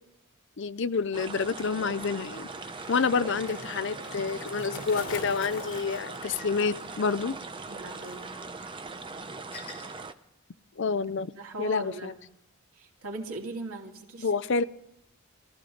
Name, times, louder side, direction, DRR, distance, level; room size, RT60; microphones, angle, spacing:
voice 1, 0.6-2.5 2.9-7.3 10.8-11.3 11.6-12.1 14.2-14.6, left 5 dB, 55° left, 15 dB, 0.5 m, -28 dB
Skateboard, 1.0-8.5 8.8-9.3, left 4 dB, 90° left, 2.2 m, -45 dB
sound 1, 1.1-10.1, right 3 dB, 20° right, 0.7 m, -40 dB
sound 2, 5.3-5.4 6.3-6.5 7.4-7.5 8.6-8.7 9.5-9.9, left 3 dB, 25° left, 3.9 m, -46 dB
voice 2, 7.7-8.3 11.3-12.2 12.7-14.3, right 2 dB, 85° right, 0 dB, 2.8 m, -39 dB
23.0 x 15.0 x 3.9 m, 0.82 s
head